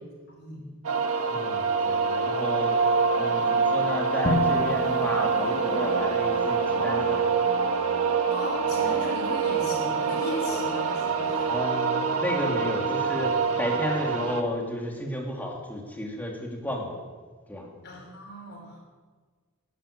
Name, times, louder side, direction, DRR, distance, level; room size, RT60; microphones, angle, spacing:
voice 1, 0.3-0.6 8.3-11.5 17.8-18.8, left 1 dB, 55° left, -1 dB, 5.4 m, -37 dB
sound 1, 0.8-14.4, right 5 dB, 90° right, 1.5 m, -25 dB
voice 2, 1.3-2.7 3.2-7.2 11.5-17.0 17.5-17.7, left 1 dB, 10° left, -1 dB, 2.7 m, -32 dB
Drum, 4.2-6.3, left 2 dB, 35° left, 1.3 m, -31 dB
12.5 x 11.5 x 8.7 m, 1.5 s
head